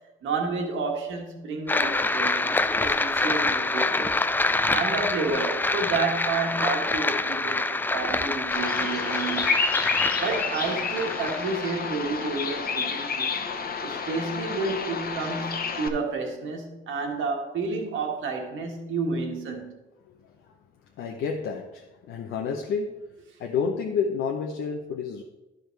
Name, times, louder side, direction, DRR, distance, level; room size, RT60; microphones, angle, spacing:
voice 1, 0.2-4.2 4.7-9.6 10.2-13.3 13.8-19.7, right 4 dB, 80° right, 1.6 m, -30 dB
sound 1, 1.7-12.6, left 2 dB, 10° left, 0.3 m, -26 dB
Bird vocalization bird call bird song, 8.5-15.9, left 5 dB, 50° left, 1.0 m, -29 dB
voice 2, 21.0-22.9 23.4-25.2, left 6 dB, 80° left, 0.8 m, -29 dB
12.0 x 5.0 x 4.5 m
cardioid pair, 90°, 20 cm